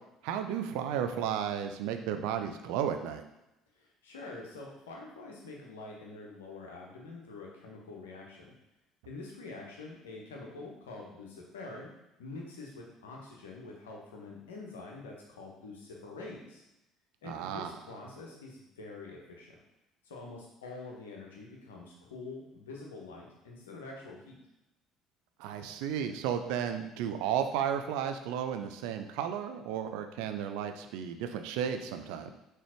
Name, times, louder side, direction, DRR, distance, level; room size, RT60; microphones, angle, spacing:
voice 1, 0.2-3.2 17.2-17.7 25.4-32.3, right 9 dB, 60° right, 7 dB, 0.5 m, -33 dB
voice 2, 3.8-8.5 9.0-11.9 12.2-16.6 17.2-19.5 20.1-24.4, left 3 dB, 70° left, -1 dB, 1.2 m, -46 dB
6.2 x 3.4 x 4.5 m, 0.92 s
figure-of-eight pair, 55°, 0 cm